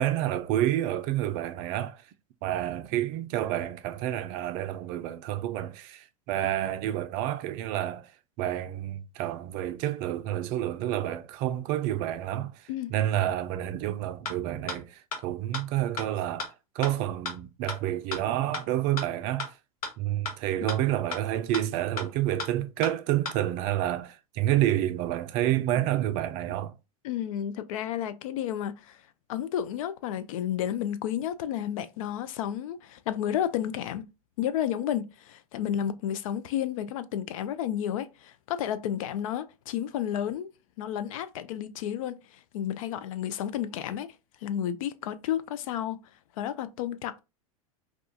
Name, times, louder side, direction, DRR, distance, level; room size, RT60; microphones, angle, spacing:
voice 1, 0.0-2.0 2.4-8.1 8.4-12.5 12.9-16.5 16.8-19.5 20.0-26.7, right 13 dB, 50° right, 0.4 m, -29 dB
sound 1, 14.2-14.3 14.7-14.8 15.1-15.2 15.5-15.6 16.0-16.1 16.4-16.5 16.8-16.9 17.2-17.3 17.7-17.8 18.1-18.2 18.5-18.6 19.0-19.1 19.4-19.5 19.8-19.9 20.2-20.3 20.7-20.8 21.1-21.2 21.5-21.6 22.0-22.1 22.4-22.5 22.8-22.9 23.2-23.3, left 4 dB, 80° left, 0.9 m, -33 dB
voice 2, 27.0-29.0 29.3-34.0 34.4-40.5 40.8-42.2 42.5-44.1 44.4-46.0 46.4-47.2, left 10 dB, 65° left, 0.4 m, -31 dB
2.3 x 2.3 x 2.6 m
hypercardioid pair, 100°, 18 cm